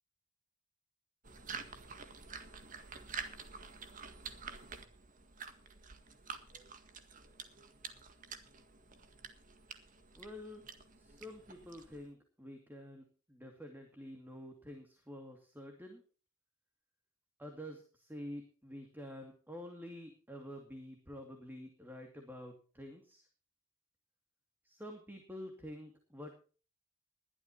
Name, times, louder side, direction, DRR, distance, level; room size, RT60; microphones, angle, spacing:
sound 1, 1.2-12.1, right 5 dB, 40° right, 1.7 m, -49 dB
voice 1, 10.2-10.6 11.0-16.0 17.4-23.2 24.6-26.3, equal, 10° right, 4 dB, 2.4 m, -48 dB
21.0 x 12.0 x 2.9 m, 0.37 s
head